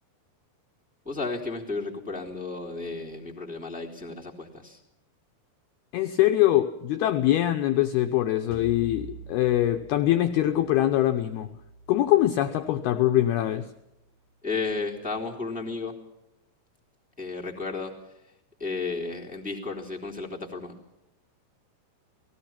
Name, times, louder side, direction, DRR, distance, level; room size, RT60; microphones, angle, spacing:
voice 1, 1.0-4.8 14.4-15.9 17.2-17.9 18.6-20.7, left 3 dB, ahead, -2 dB, 2.6 m, -33 dB
voice 2, 5.9-11.5 11.9-13.6, left 13 dB, 85° left, 6 dB, 2.2 m, -23 dB
sound 1, 8.5-13.6, left 1 dB, 40° left, 6.4 m, -47 dB
30.0 x 18.5 x 5.9 m, 0.88 s
omnidirectional pair, 5.8 m